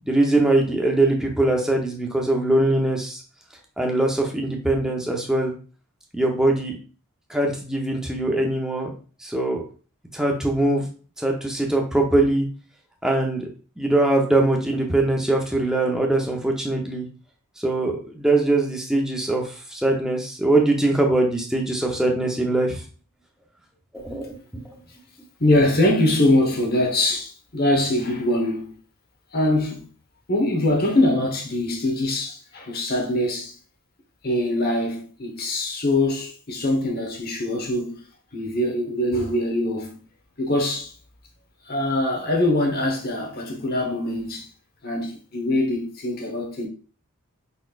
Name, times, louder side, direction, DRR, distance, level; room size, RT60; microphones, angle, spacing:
voice 1, 0.1-3.2 3.8-5.5 6.1-6.8 7.3-8.9 9.2-9.6 10.1-10.9 11.2-12.5 13.0-13.5 13.8-17.1 17.6-22.8 23.9-24.4, right 2 dB, 5° right, 0.8 m, -22 dB
voice 2, 25.4-28.7 29.3-29.9 30.3-33.6 34.2-38.0 38.3-40.0 40.4-40.9 41.7-44.5 44.8-46.7, left 1 dB, 45° left, 1.0 m, -23 dB
5.2 x 4.1 x 2.4 m
head